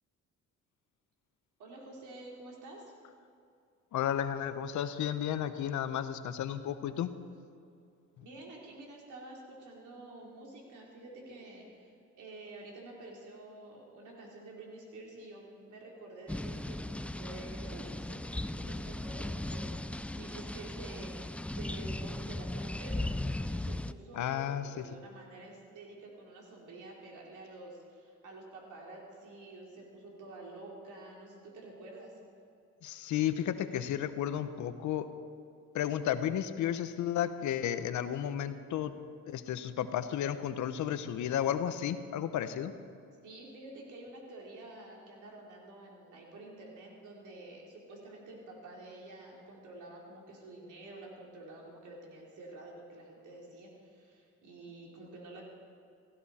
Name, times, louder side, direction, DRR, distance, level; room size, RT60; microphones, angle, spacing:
voice 1, 1.6-3.0 8.2-11.9 12.2-21.1 21.5-23.1 23.5-32.1 43.2-55.4, right 2 dB, 80° right, -2 dB, 3.8 m, -49 dB
voice 2, 3.9-7.1 8.2-8.3 24.1-24.9 32.8-35.1 35.7-39.0 39.3-42.7, left 10 dB, 75° left, 11 dB, 0.9 m, -33 dB
sound 1, 16.3-23.9, left 1 dB, 5° left, 0.4 m, -37 dB
17.0 x 16.0 x 4.3 m, 2.5 s
cardioid pair, 90°, 30 cm